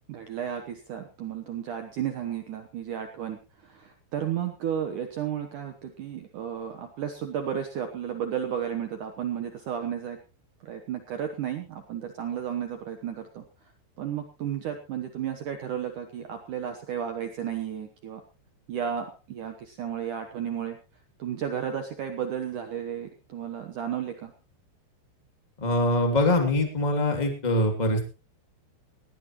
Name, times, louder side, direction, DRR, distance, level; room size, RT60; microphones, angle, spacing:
voice 1, 0.1-10.2 10.6-13.4 14.0-18.2 18.7-20.8 21.2-24.3, right 9 dB, 75° right, 6 dB, 1.8 m, -33 dB
voice 2, 25.6-28.1, left 1 dB, 15° left, 4 dB, 1.4 m, -23 dB
19.0 x 16.5 x 3.1 m, 0.33 s
omnidirectional pair, 5.4 m